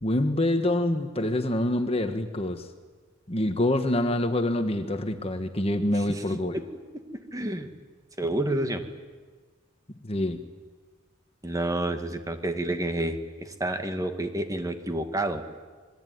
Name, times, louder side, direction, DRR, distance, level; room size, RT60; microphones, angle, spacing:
voice 1, 0.0-2.7 3.3-6.6 10.0-10.4, left 1 dB, 30° left, 7 dB, 1.4 m, -26 dB
voice 2, 7.1-7.7 8.2-8.8 11.4-15.4, right 1 dB, 15° right, 6 dB, 1.9 m, -29 dB
27.0 x 21.5 x 9.5 m, 1.4 s
head